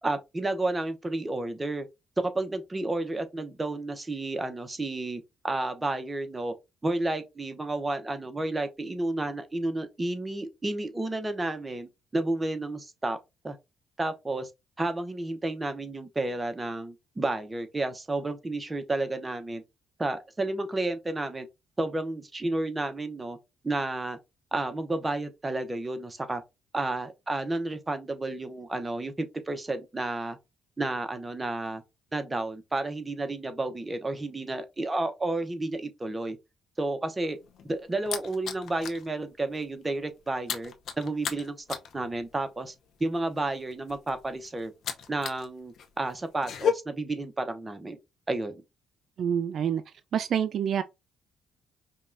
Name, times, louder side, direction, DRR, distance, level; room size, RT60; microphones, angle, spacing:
voice 1, 0.0-1.9 2.2-6.5 6.8-13.2 13.4-13.6 14.0-14.5 14.8-19.6 20.0-21.5 21.8-23.4 23.6-24.2 24.5-26.4 26.7-30.4 30.8-31.8 32.1-36.4 36.8-37.4 37.6-41.6 41.9-42.7 43.0-44.7 45.1-48.0 48.3-48.6, right 2 dB, 20° right, 0.7 m, -31 dB
sound 1, 37.3-39.1 39.4-39.6 39.9-45.5 45.7-46.7, left 7 dB, 70° left, 0.6 m, -34 dB
voice 2, 49.2-49.8 50.1-50.8, right 8 dB, 65° right, 0.3 m, -27 dB
5.3 x 2.3 x 2.5 m
cardioid pair, 90°, 0 cm